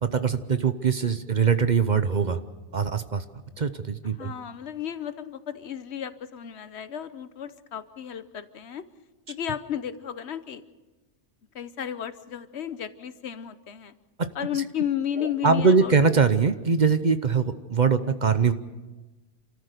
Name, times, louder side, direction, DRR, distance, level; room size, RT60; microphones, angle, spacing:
voice 1, 0.0-2.4 2.7-3.2 3.6-4.3 14.2-14.3 15.2-18.5, right 5 dB, 45° right, 10 dB, 0.9 m, -22 dB
voice 2, 4.2-8.8 9.3-10.6 11.5-13.9 14.3-15.9, left 9 dB, 70° left, 13 dB, 1.1 m, -33 dB
28.0 x 14.0 x 6.7 m, 1.2 s
omnidirectional pair, 1.2 m